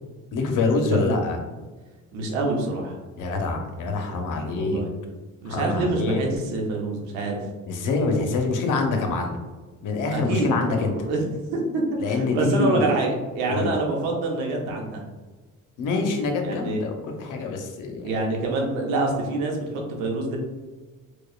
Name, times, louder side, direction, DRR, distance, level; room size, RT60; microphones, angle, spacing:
voice 1, 0.3-1.4 3.2-4.8 5.5-6.2 7.7-9.4 9.8-10.9 12.0-12.9 13.5-13.8 15.8-18.1, left 3 dB, 65° left, 3 dB, 0.8 m, -25 dB
voice 2, 2.1-3.0 4.6-4.9 5.4-7.4 10.1-11.2 11.5-15.0 16.4-16.8 18.0-20.4, right 2 dB, 90° right, 0 dB, 0.8 m, -26 dB
4.6 x 2.3 x 2.4 m, 1.3 s
supercardioid pair, 80°, 34 cm